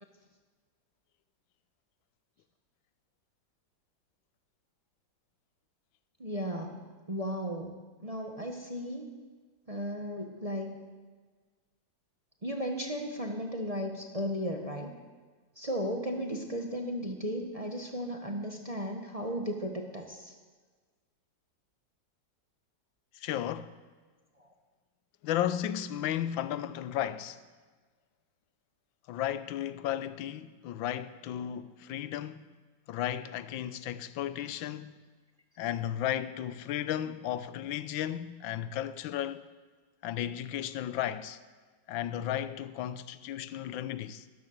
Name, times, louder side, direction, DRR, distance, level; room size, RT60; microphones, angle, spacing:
voice 1, 6.2-6.8 7.1-7.7 8.0-9.1 9.7-10.8 12.4-14.9 15.6-20.3 24.4-24.5, equal, 20° right, 1.1 m, -35 dB
voice 2, 23.1-23.8 25.2-27.4 29.1-32.5 32.9-35.0 35.6-39.5 40.0-41.4 41.9-44.2, left 11 dB, 80° left, 1.4 m, -34 dB
13.0 x 13.0 x 6.6 m
omnidirectional pair, 2.1 m